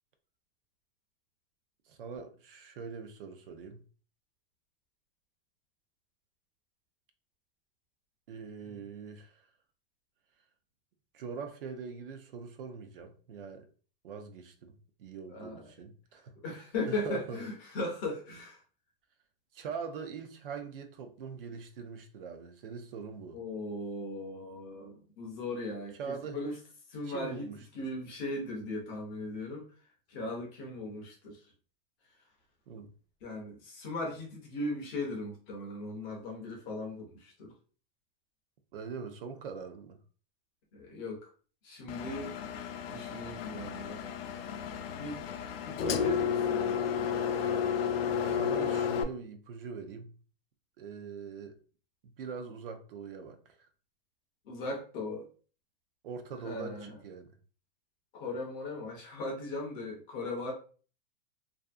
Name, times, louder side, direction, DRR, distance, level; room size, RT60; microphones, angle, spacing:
voice 1, 1.9-3.8 8.3-9.5 11.1-13.7 14.0-17.4 19.5-23.4 26.0-26.5 27.0-27.6 32.7-32.9 38.7-40.0 45.8-46.0 48.0-50.1 50.8-51.6 52.0-53.6 56.0-57.3, right 5 dB, 70° right, 0.6 m, -43 dB
voice 2, 15.3-15.7 16.4-18.6 23.3-26.6 26.9-27.5 27.7-29.7 30.1-31.4 33.2-37.5 40.7-41.3 41.6-42.4 42.8-44.0 44.9-45.3 45.6-47.1 54.5-55.3 56.4-57.0 58.1-60.5, left 2 dB, 20° left, 0.4 m, -38 dB
Engine, 41.9-49.0, left 7 dB, 90° left, 0.5 m, -32 dB
2.5 x 2.5 x 2.3 m
supercardioid pair, 165°, 29 cm